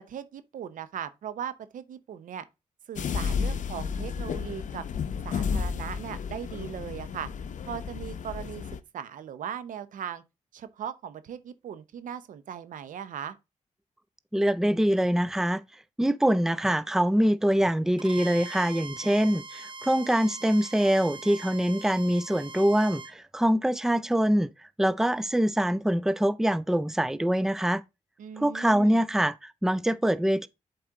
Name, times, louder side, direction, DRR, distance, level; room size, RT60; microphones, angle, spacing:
voice 1, 0.0-2.4 2.9-4.8 5.2-7.3 7.7-8.7 8.9-10.2 10.5-13.4 28.2-29.0, right 8 dB, 85° right, 0.8 m, -38 dB
sound 1, 3.0-8.8, left 6 dB, 70° left, 0.7 m, -32 dB
voice 2, 14.3-15.6 16.0-24.5 24.8-27.8 28.4-30.5, equal, 5° right, 0.5 m, -24 dB
Bowed string instrument, 18.0-23.2, right 3 dB, 35° right, 1.0 m, -42 dB
7.7 x 4.3 x 3.8 m
cardioid pair, 70°, 13 cm